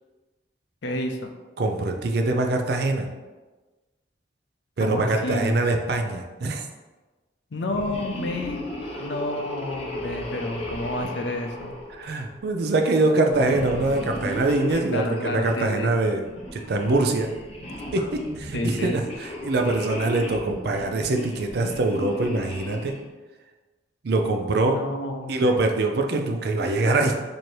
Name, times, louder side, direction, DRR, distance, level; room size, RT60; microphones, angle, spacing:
voice 1, 0.8-1.3 4.8-5.6 7.5-8.6 9.0-11.7 14.7-15.9 18.5-18.9 24.7-25.5, left 1 dB, 75° left, 5 dB, 0.5 m, -30 dB
voice 2, 1.6-3.1 4.8-6.7 12.0-17.3 17.9-23.0 24.0-24.8 25.3-27.1, right 2 dB, 60° right, 4 dB, 0.4 m, -24 dB
sound 1, 7.6-12.4 13.3-15.6 16.2-23.1, left 1 dB, 35° left, 0.8 m, -35 dB
3.1 x 2.7 x 4.4 m, 1.2 s
head